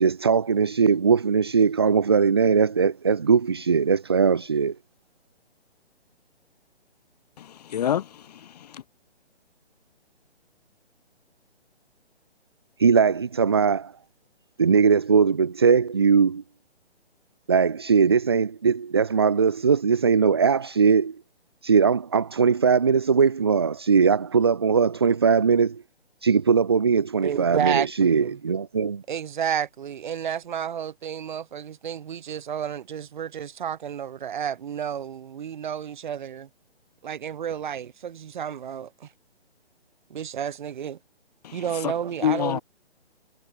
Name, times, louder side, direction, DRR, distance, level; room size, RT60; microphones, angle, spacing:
voice 1, 0.0-4.8 12.8-13.9 14.6-16.4 17.5-21.2 21.6-25.8 26.2-29.0, right 6 dB, 25° right, 0.4 m, -20 dB
voice 2, 7.4-8.8 41.4-41.9 42.2-42.6, left 10 dB, 35° left, 1.6 m, -28 dB
voice 3, 27.2-28.4 29.1-36.5 37.0-39.1 40.1-41.0 41.5-42.6, right 8 dB, 45° right, 2.0 m, -31 dB
hypercardioid pair, 150°, 33 cm